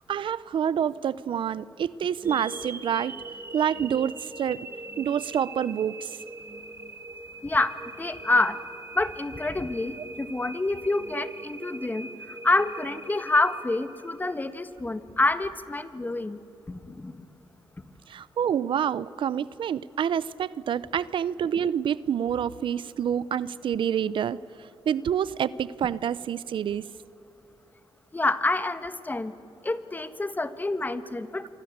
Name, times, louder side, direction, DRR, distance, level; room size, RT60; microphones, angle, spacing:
voice 1, 0.1-3.1 3.5-4.7 5.0-6.2 10.0-10.1 18.1-26.9, right 8 dB, 65° right, 19 dB, 0.6 m, -27 dB
sound 1, 2.2-14.3, right 2 dB, 25° right, 1.9 m, -42 dB
voice 2, 7.4-8.6 8.9-12.1 12.4-16.4 16.7-17.3 28.1-29.3 29.6-31.5, left 2 dB, 20° left, 12 dB, 1.4 m, -27 dB
27.0 x 25.0 x 8.0 m, 2.8 s
cardioid pair, 95°, 9 cm